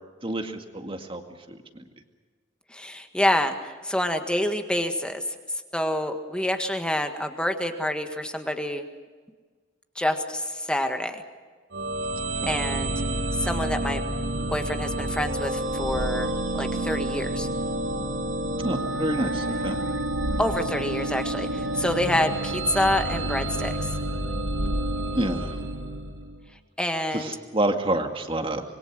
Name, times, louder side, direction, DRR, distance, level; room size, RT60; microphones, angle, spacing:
voice 1, 0.2-1.2 1.5-1.6 12.4-12.5 18.6-19.8 25.2-25.5 27.1-28.6, right 1 dB, 30° right, 5 dB, 2.1 m, -28 dB
voice 2, 2.7-5.2 5.7-8.8 9.9-11.2 12.5-12.9 13.4-14.0 14.5-17.5 20.4-23.9 26.8-27.3, left 1 dB, 5° left, 6 dB, 1.7 m, -27 dB
sound 1, 11.7-26.4, right 1 dB, 75° right, 3.3 m, -29 dB
26.0 x 22.5 x 6.3 m, 1.5 s
head